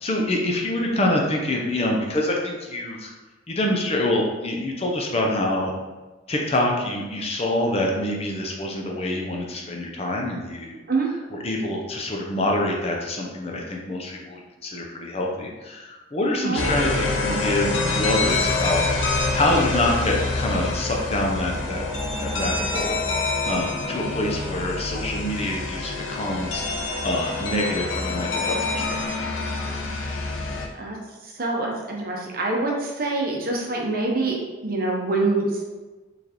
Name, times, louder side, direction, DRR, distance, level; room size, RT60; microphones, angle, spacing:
voice 1, 0.0-3.1 3.5-5.7 6.3-10.8 11.3-18.8 19.3-21.8 22.2-26.6 27.0-29.3, left 1 dB, 30° left, 0 dB, 0.5 m, -26 dB
sound 1, 16.6-30.7, left 3 dB, 90° left, 0.7 m, -26 dB
voice 2, 31.2-35.6, right 3 dB, 50° right, -1 dB, 0.7 m, -25 dB
4.4 x 3.3 x 2.9 m, 1.2 s
head